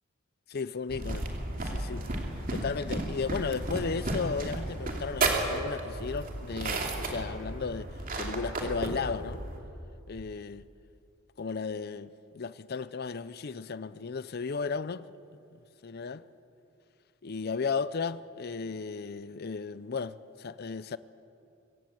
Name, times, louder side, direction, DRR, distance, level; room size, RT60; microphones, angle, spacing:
voice 1, 0.5-1.3 1.6-2.1 2.5-9.4 10.1-10.7 11.4-15.0 15.5-16.2 17.2-21.0, left 5 dB, 50° left, 0.5 m, -35 dB
sound 1, 0.9-9.6, right 2 dB, 40° right, 2.9 m, -33 dB
23.5 x 18.0 x 7.9 m
head